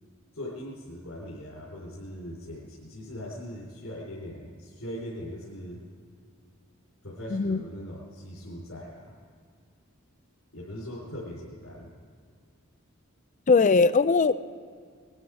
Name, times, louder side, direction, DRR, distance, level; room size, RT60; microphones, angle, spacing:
voice 1, 0.3-5.8 7.0-9.1 10.5-11.9, equal, 75° left, -6 dB, 3.7 m, -40 dB
voice 2, 7.3-7.6 13.5-14.3, left 4 dB, 35° left, 15 dB, 0.4 m, -20 dB
20.5 x 12.0 x 4.8 m, 2.1 s
head